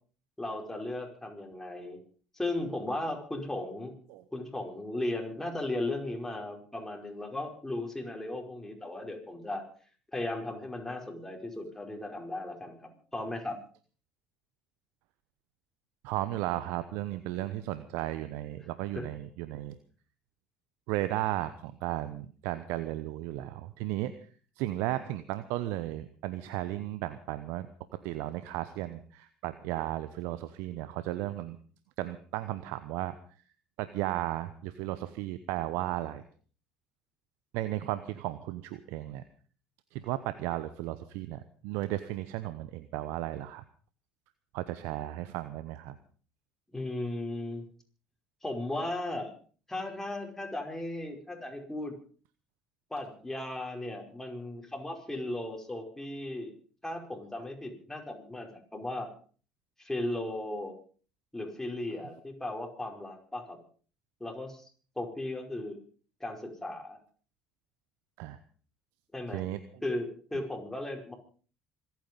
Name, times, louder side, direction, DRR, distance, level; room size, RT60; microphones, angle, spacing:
voice 1, 0.4-2.0 2.3-3.9 4.3-9.6 10.1-13.6 19.0-19.1 46.7-47.7 48.4-49.3 49.7-52.0 52.9-56.5 56.8-59.1 59.8-60.7 61.3-63.6 64.2-64.7 65.0-65.8 66.2-67.0 69.1-69.4 69.8-71.1, left 1 dB, 10° left, 2 dB, 5.2 m, -36 dB
voice 2, 16.0-19.8 20.9-24.1 24.6-27.7 28.0-31.6 32.0-33.2 33.8-36.2 37.5-39.2 39.9-43.6 44.5-46.0 68.2-68.4 69.3-69.6, right 15 dB, 70° right, 13 dB, 0.9 m, -35 dB
26.0 x 9.4 x 5.4 m, 0.42 s
hypercardioid pair, 65°, 4 cm